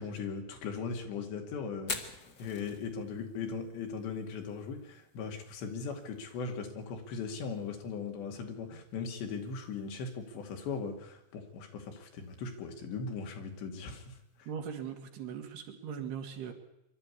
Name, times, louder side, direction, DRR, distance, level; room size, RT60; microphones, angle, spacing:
voice 1, 0.0-2.0 2.4-14.2, left 5 dB, 85° left, 4 dB, 4.6 m, -39 dB
Fire, 1.8-15.6, left 4 dB, 55° left, 1.1 m, -50 dB
voice 2, 14.5-16.5, right 7 dB, 70° right, 4 dB, 4.2 m, -40 dB
24.0 x 12.5 x 9.8 m, 0.86 s
omnidirectional pair, 5.0 m